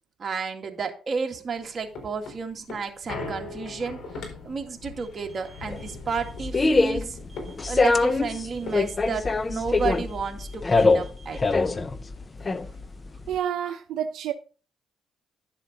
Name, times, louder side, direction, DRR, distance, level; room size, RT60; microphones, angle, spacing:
voice 1, 0.2-4.0 4.4-7.2 7.7-11.4, right 5 dB, 40° right, 2.1 m, -32 dB
sound 1, 1.5-10.2 10.5-10.6 10.9-12.3 12.7-12.8, left 3 dB, 70° left, 4.6 m, -41 dB
sound 2, 5.0-6.6 7.3-9.1 9.8-11.6, right 6 dB, 5° left, 2.5 m, -54 dB
sound 3, 5.7-13.4, left 3 dB, 25° left, 0.7 m, -24 dB
voice 2, 13.3-14.3, right 9 dB, 80° right, 0.7 m, -29 dB
11.5 x 7.2 x 4.1 m
cardioid pair, 90°, 0 cm